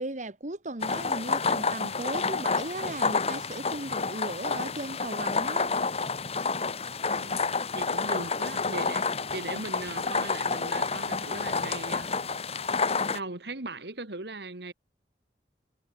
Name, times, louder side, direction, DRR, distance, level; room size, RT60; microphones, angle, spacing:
voice 1, 0.0-5.7, right 2 dB, 45° right, 1.8 m, -36 dB
sound 1, 0.8-13.2, left 4 dB, 35° left, 1.3 m, -29 dB
voice 2, 7.1-12.2 13.1-14.7, right 2 dB, 65° right, 2.2 m, -39 dB
head